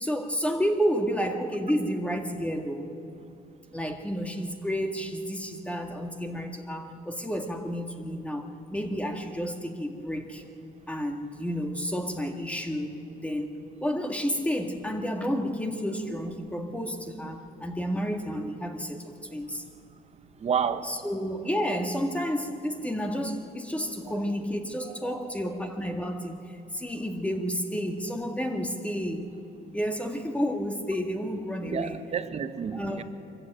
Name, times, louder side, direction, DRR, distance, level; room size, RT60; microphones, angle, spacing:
voice 1, 0.0-2.9 3.7-8.4 8.7-10.4 10.9-12.9 13.2-13.5 13.8-19.6 20.8-29.3 29.7-32.0 32.7-33.0, equal, 10° left, 4 dB, 1.9 m, -30 dB
voice 2, 20.4-21.0 24.1-24.3 24.9-25.3 31.7-33.0, right 7 dB, 40° right, 11 dB, 1.1 m, -31 dB
23.5 x 14.5 x 9.1 m, 2.7 s
cardioid pair, 110°, 17 cm